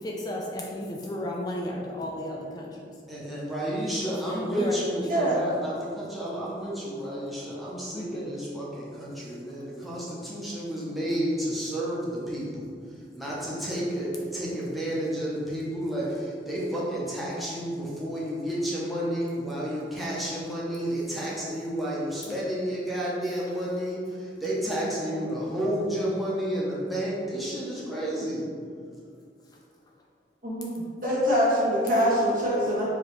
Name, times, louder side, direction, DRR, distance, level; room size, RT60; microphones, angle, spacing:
voice 1, 0.0-2.9 4.1-5.3 7.9-8.3 22.3-22.4 25.0-25.2, left 1 dB, 25° left, -2 dB, 0.3 m, -33 dB
voice 2, 3.1-12.7 13.1-28.4, equal, ahead, -8 dB, 0.7 m, -31 dB
voice 3, 31.0-32.8, equal, 50° right, -7 dB, 1.3 m, -23 dB
4.8 x 2.8 x 3.2 m, 2.3 s
head